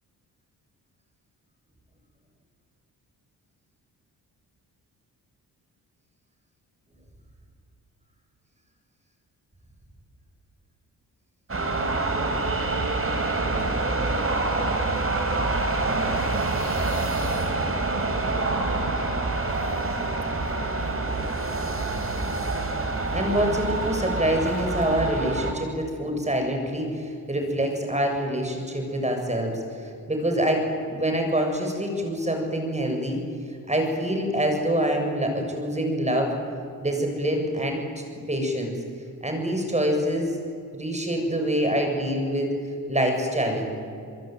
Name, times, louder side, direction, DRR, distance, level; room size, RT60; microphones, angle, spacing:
sound 1, 11.5-25.5, right 2 dB, 35° right, 4.1 m, -26 dB
voice 1, 23.1-29.6 30.1-33.2 33.7-36.3 36.8-37.8 38.3-38.7 39.2-40.4 40.7-42.6 42.9-43.7, equal, 15° right, 3 dB, 7.3 m, -25 dB
25.0 x 22.5 x 9.2 m, 2.3 s
cardioid pair, 70°, 39 cm